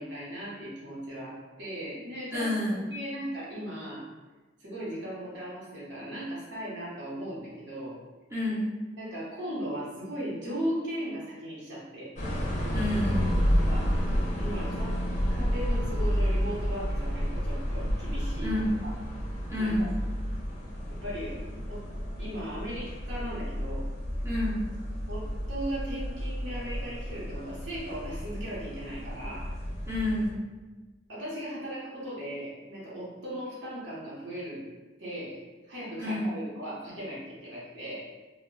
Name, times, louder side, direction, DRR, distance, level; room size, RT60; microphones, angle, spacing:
voice 1, 0.0-2.6 2.9-4.1 4.6-8.0 9.0-12.1 13.7-15.0 15.3-18.5 18.8-18.9 19.6-19.9 20.9-21.4 21.7-21.9 22.2-23.9 25.1-29.5 31.1-34.6 35.0-38.1, equal, 70° right, -8 dB, 0.8 m, -37 dB
voice 2, 2.3-2.8 8.3-8.8 12.7-13.7 18.4-18.7 19.5-19.8 24.2-24.7 29.9-30.4 36.0-36.3, left 1 dB, 15° right, -11 dB, 0.6 m, -29 dB
sound 1, 12.2-30.3, equal, 40° left, 0.5 m, -31 dB
2.1 x 2.0 x 3.7 m, 1.3 s
head